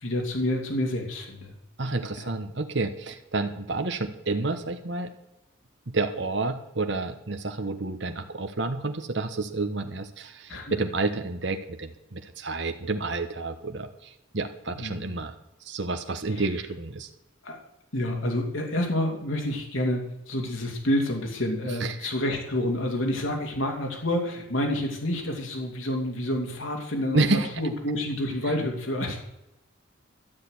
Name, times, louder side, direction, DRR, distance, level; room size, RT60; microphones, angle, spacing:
voice 1, 0.0-1.5 2.2-2.3 10.5-10.8 14.7-14.9 17.4-17.6 17.9-29.2, left 1 dB, 80° left, 1 dB, 2.7 m, -28 dB
voice 2, 1.8-5.1 5.9-15.3 15.6-17.1 21.8-22.1 27.1-27.5 28.4-28.5, right 3 dB, 60° right, 6 dB, 1.2 m, -29 dB
12.5 x 6.6 x 9.8 m, 0.91 s
head